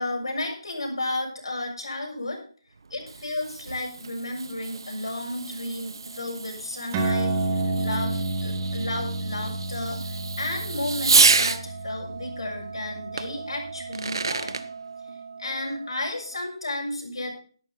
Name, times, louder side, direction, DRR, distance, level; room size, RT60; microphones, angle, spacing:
voice 1, 0.0-2.4 2.9-14.6 15.4-17.3, left 1 dB, 75° left, 1 dB, 6.9 m, -33 dB
Fireworks, 2.8-11.6 13.2-13.3 13.8-14.6, right 4 dB, 60° right, 1.0 m, -28 dB
sound 1, 4.4-16.4, right 5 dB, 80° right, 4.0 m, -43 dB
sound 2, 6.9-13.9, right 2 dB, 15° right, 1.6 m, -30 dB
12.5 x 12.0 x 4.1 m, 0.41 s
hypercardioid pair, 170°, 3 cm